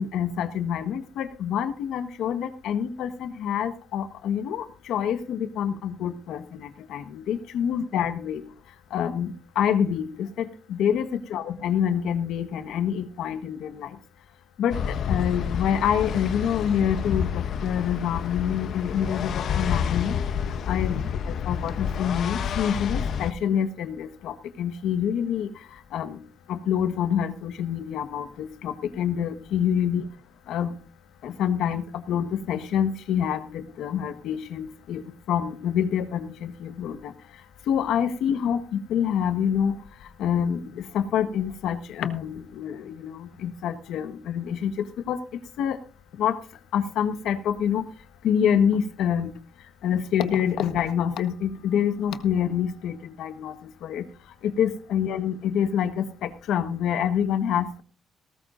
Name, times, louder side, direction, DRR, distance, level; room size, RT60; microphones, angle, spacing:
voice 1, 0.0-8.4 8.9-14.0 14.6-20.2 20.7-25.5 25.9-26.2 26.5-30.0 30.5-30.8 31.2-37.1 37.7-39.7 40.2-45.2 45.6-45.8 46.2-46.4 46.7-47.8 48.2-49.3 49.8-54.1 54.4-57.8, left 8 dB, 85° left, 9 dB, 1.4 m, -27 dB
sound 1, 14.7-23.3, left 7 dB, 65° left, 0.9 m, -29 dB
18.0 x 14.0 x 2.6 m, 0.38 s
cardioid pair, 90°, 0 cm